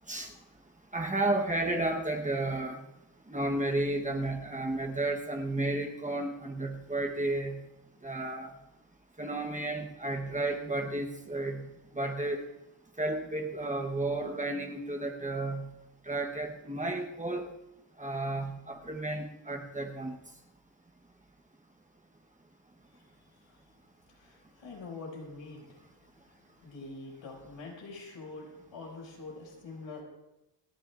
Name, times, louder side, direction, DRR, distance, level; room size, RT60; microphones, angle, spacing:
voice 1, 0.9-2.8 3.3-7.6 8.0-8.5 9.2-11.7 11.9-12.4 13.0-15.7 16.1-17.5 18.0-20.2, right 2 dB, 15° right, 2 dB, 1.1 m, -32 dB
voice 2, 22.9-23.6 24.1-25.8 26.1-30.0, left 3 dB, 80° left, -3 dB, 6.3 m, -46 dB
29.0 x 11.0 x 2.5 m, 0.93 s
wide cardioid pair, 170°, 45 cm